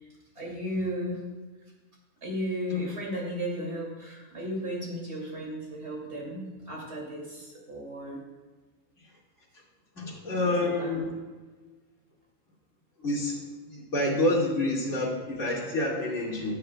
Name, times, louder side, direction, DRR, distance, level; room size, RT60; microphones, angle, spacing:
voice 1, 0.4-1.2 2.2-8.2 10.3-11.0, equal, 50° right, -2 dB, 3.0 m, -35 dB
voice 2, 10.0-11.1 13.0-13.4 13.7-16.5, left 1 dB, 60° left, -5 dB, 2.6 m, -28 dB
16.5 x 7.7 x 2.3 m, 1.3 s
omnidirectional pair, 1.4 m